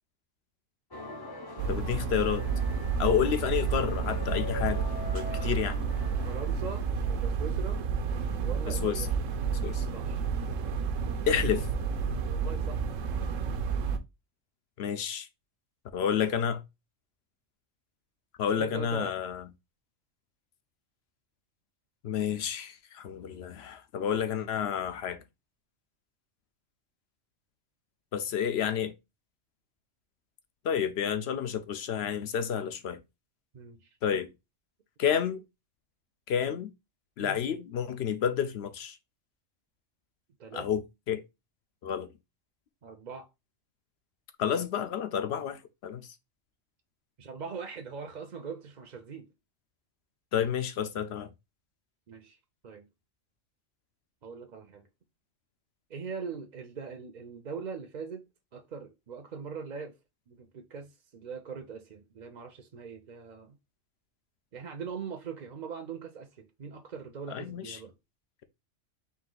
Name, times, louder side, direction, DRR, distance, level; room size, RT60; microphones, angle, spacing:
sound 1, 0.9-7.5, left 3 dB, 30° left, 0.5 m, -43 dB
sound 2, 1.6-14.0, right 6 dB, 85° right, 1.0 m, -31 dB
voice 1, 1.7-2.4 3.0-4.8 5.1-5.8 8.7-9.1 9.6-9.8 11.3-11.7 14.8-15.3 15.9-16.6 18.4-19.4 22.0-25.2 28.1-28.9 30.6-33.0 34.0-34.3 35.0-35.4 36.3-36.7 37.2-39.0 40.5-41.2 41.8-42.1 44.4-46.1 50.3-51.3 67.3-67.8, left 8 dB, 65° left, 0.8 m, -30 dB
voice 2, 5.2-5.6 6.2-7.8 8.4-9.1 9.9-10.3 12.3-12.9 18.6-19.2 33.5-33.9 37.2-37.4 40.4-40.7 42.8-43.3 47.2-49.3 52.1-52.4 52.6-52.9 54.2-54.9 55.9-58.2 58.5-60.0 60.3-63.6 64.5-67.9, right 5 dB, 50° right, 0.6 m, -41 dB
4.1 x 2.8 x 3.8 m
omnidirectional pair, 1.3 m